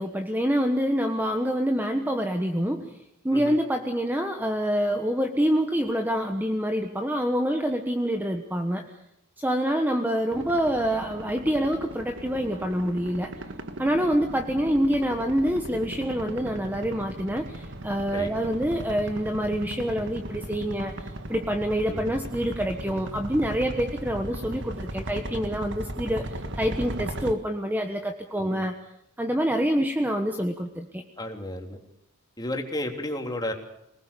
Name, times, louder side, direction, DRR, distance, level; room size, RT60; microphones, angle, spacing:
voice 1, 0.0-3.0 3.2-8.9 9.4-13.3 13.8-20.9 21.3-28.8 29.2-31.0, equal, 10° right, 5 dB, 1.3 m, -26 dB
sound 1, 10.3-27.3, right 1 dB, 55° right, 1.8 m, -37 dB
voice 2, 31.2-31.8 32.4-33.5, left 1 dB, 20° left, 3 dB, 3.4 m, -32 dB
26.5 x 20.0 x 6.9 m, 0.81 s
head